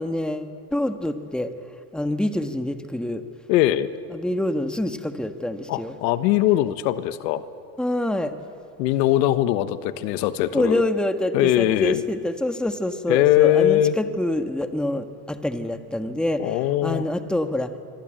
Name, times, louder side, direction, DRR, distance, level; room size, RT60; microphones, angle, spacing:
voice 1, 0.0-1.5 1.9-3.2 4.1-6.0 7.8-8.3 10.5-17.7, left 1 dB, ahead, 7 dB, 1.4 m, -26 dB
voice 2, 3.5-3.9 5.7-7.4 8.8-10.8 11.3-12.0 13.1-14.0 16.4-17.0, left 14 dB, 80° left, 12 dB, 1.4 m, -21 dB
25.5 x 23.5 x 9.0 m, 2.4 s
supercardioid pair, 120°, 49 cm